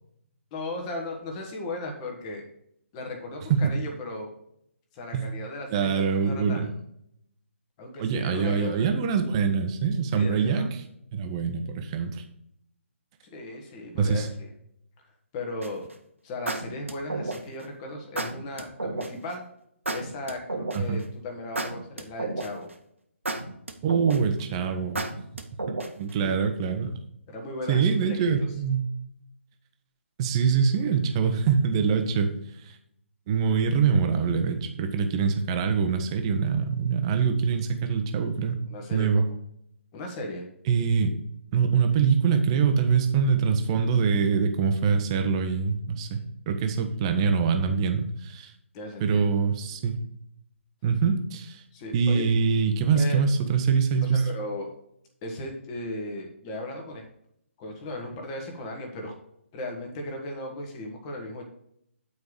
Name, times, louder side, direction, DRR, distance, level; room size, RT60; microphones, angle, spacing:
voice 1, 0.5-2.5 2.9-4.3 4.9-6.7 7.8-8.9 10.1-10.7 13.3-14.5 15.3-15.9 16.2-19.4 19.9-22.7 26.2-26.4 27.3-28.3 38.7-39.2 39.9-40.4 48.7-49.3 51.7-52.3 52.9-53.2 54.0-54.7 55.2-57.0 57.6-59.1 59.5-61.4, left 1 dB, 20° left, 1 dB, 1.5 m, -36 dB
voice 2, 5.7-6.7 8.0-10.7 11.1-12.2 13.9-14.3 20.7-21.0 23.8-25.0 25.7-27.0 27.7-28.9 30.2-32.3 32.6-32.7 33.3-38.6 38.9-39.2 40.7-41.1 41.5-48.5 49.0-50.0 50.8-51.6 51.9-54.3, right 6 dB, 25° right, 6 dB, 0.9 m, -24 dB
sound 1, 15.6-15.9 16.5-17.6 18.2-19.1 19.9-21.0 21.6-22.7 23.3-24.4 25.0-26.1, right 2 dB, 70° right, 1.3 m, -31 dB
9.2 x 4.7 x 4.9 m, 0.73 s
figure-of-eight pair, 140°, 7 cm